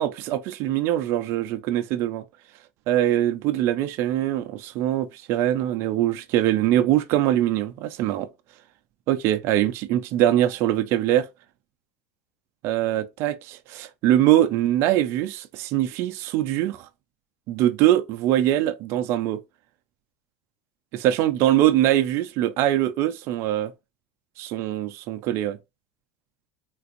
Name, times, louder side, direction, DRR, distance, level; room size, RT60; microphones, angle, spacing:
voice 1, 0.0-2.2 2.9-8.3 9.1-11.3 12.6-16.9 17.5-19.4 20.9-23.7 24.4-25.6, right 13 dB, 50° right, 0.5 m, -23 dB
3.8 x 2.5 x 2.5 m
supercardioid pair, 135°, 5 cm